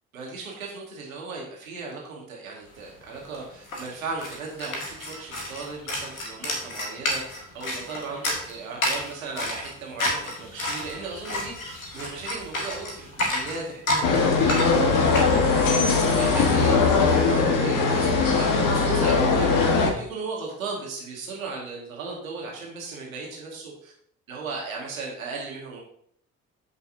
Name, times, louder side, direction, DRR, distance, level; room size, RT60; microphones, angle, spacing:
voice 1, 0.1-19.7 20.0-23.9 24.3-25.8, right 4 dB, 80° right, -2 dB, 2.1 m, -37 dB
sound 1, 2.8-2.9 3.1-17.0, left 1 dB, 85° left, 1.5 m, -31 dB
sound 2, 14.0-19.9, left 4 dB, 50° left, 1.6 m, -20 dB
13.0 x 5.7 x 2.8 m, 0.64 s
figure-of-eight pair, 50°, 40 cm